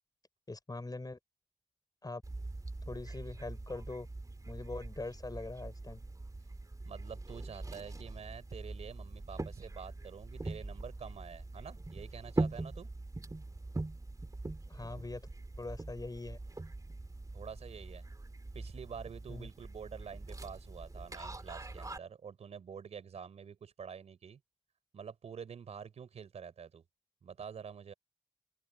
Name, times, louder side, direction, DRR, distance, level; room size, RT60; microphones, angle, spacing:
voice 1, 0.5-1.2 2.0-2.2 2.9-4.1 4.5-6.0 14.7-15.3 15.6-16.4 19.3-19.5, left 2 dB, 35° left, 6.6 m, -42 dB
sound 1, 2.2-22.0, right 2 dB, 35° right, 2.6 m, -42 dB
voice 2, 6.8-12.9 17.3-18.0 18.5-24.4 24.9-26.8 27.2-27.9, right 7 dB, 85° right, 4.8 m, -47 dB
open air
cardioid pair, 45°, 11 cm